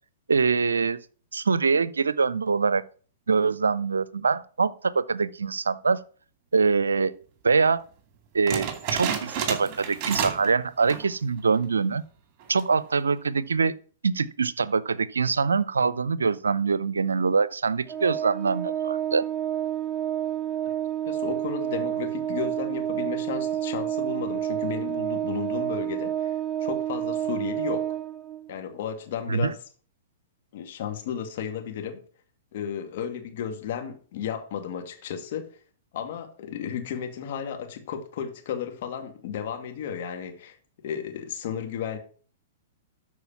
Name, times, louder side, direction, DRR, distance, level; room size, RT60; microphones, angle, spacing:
voice 1, 0.3-1.0 1.3-2.8 3.3-6.0 6.5-7.1 7.4-7.8 8.3-12.0 12.5-13.8 14.0-19.2 29.3-29.5, right 5 dB, 85° right, 0.6 m, -24 dB
sound 1, 8.5-10.5 10.8-11.2 11.6-11.7 12.4-12.8, right 8 dB, 40° right, 2.5 m, -30 dB
Organ, 17.9-28.6, right 11 dB, 20° right, 0.7 m, -29 dB
voice 2, 21.1-26.3 26.6-28.0 28.5-29.6 30.5-32.0 32.5-35.5 35.9-40.6 40.8-42.0, left 8 dB, 60° left, 2.2 m, -33 dB
12.5 x 4.8 x 5.8 m
hypercardioid pair, 110°, 0 cm